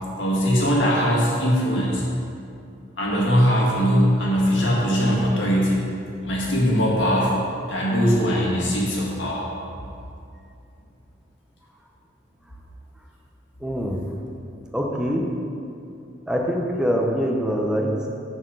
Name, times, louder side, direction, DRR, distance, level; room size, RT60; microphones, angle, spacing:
voice 1, 0.2-2.0 3.0-5.9 6.2-7.4 7.7-9.4, equal, 90° left, -4 dB, 1.7 m, -21 dB
voice 2, 13.6-14.0 14.7-15.3 16.3-18.1, equal, 5° right, 0 dB, 0.7 m, -24 dB
7.0 x 4.5 x 6.4 m, 2.5 s
head